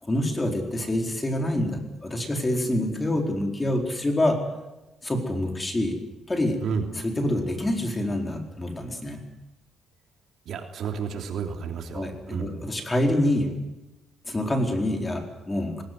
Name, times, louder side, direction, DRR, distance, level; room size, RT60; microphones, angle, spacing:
voice 1, 0.0-4.4 5.0-6.0 6.3-6.6 7.0-9.2 11.9-13.6 14.3-15.8, left 1 dB, 20° left, 3 dB, 4.4 m, -26 dB
voice 2, 10.4-12.5, right 6 dB, 70° right, 4 dB, 3.2 m, -31 dB
19.0 x 19.0 x 9.4 m, 1.0 s
cardioid pair, 90°, 0 cm